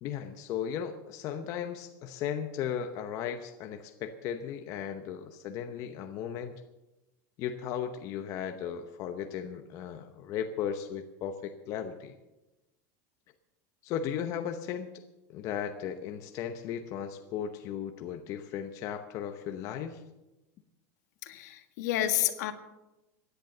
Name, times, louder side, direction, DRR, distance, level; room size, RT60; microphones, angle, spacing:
voice 1, 0.0-6.5 7.4-12.1 13.8-14.9 15.3-20.0, left 8 dB, 35° left, 6 dB, 0.9 m, -36 dB
voice 2, 21.2-22.5, left 12 dB, 65° left, 8 dB, 1.6 m, -30 dB
16.5 x 10.5 x 6.7 m, 1.0 s
supercardioid pair, 170°, 10 cm